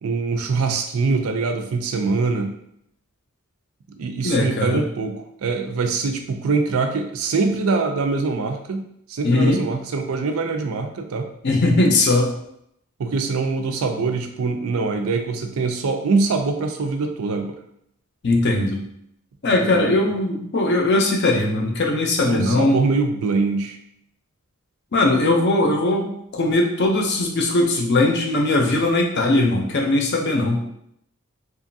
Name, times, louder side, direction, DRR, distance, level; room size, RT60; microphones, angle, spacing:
voice 1, 0.0-2.5 4.0-8.8 9.1-11.3 13.0-17.6 19.5-20.1 22.2-23.8, right 4 dB, 75° right, 5 dB, 0.4 m, -23 dB
voice 2, 4.2-4.8 9.2-9.6 11.4-12.3 18.2-18.8 19.4-22.8 24.9-30.6, left 2 dB, 50° left, 1 dB, 0.5 m, -19 dB
3.0 x 2.4 x 2.6 m, 0.74 s
head